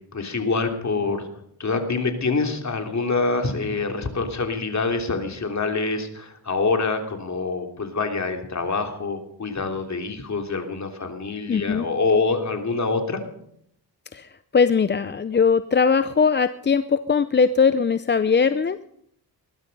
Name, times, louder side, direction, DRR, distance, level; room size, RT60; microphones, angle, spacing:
voice 1, 0.1-1.3 1.6-13.2, left 3 dB, 40° left, 4 dB, 3.2 m, -25 dB
voice 2, 11.5-11.8 14.1-18.8, left 5 dB, 25° left, 13 dB, 0.6 m, -20 dB
21.0 x 12.5 x 5.4 m, 0.72 s
cardioid pair, 80°, 41 cm